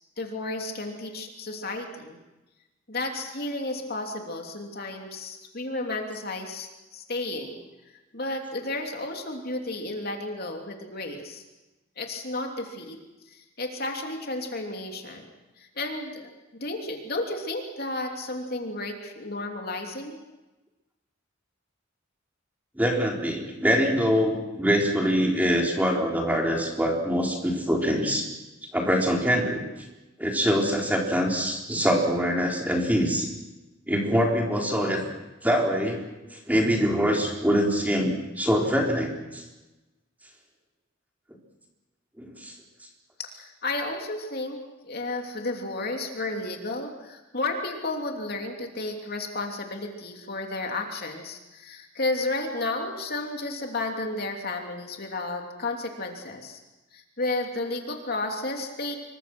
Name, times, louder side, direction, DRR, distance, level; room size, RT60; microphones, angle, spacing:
voice 1, 0.2-2.2 2.9-7.6 8.1-11.4 12.0-13.0 13.3-15.2 15.6-20.2 43.2-44.6 44.8-56.6 56.9-59.0, left 2 dB, 50° left, 2 dB, 3.1 m, -32 dB
voice 2, 22.8-28.3 28.7-29.6 30.2-33.3 33.9-35.0 35.4-36.0 36.5-39.4 42.2-42.5, equal, 10° right, 0 dB, 4.0 m, -24 dB
26.5 x 23.5 x 6.2 m, 1.1 s
head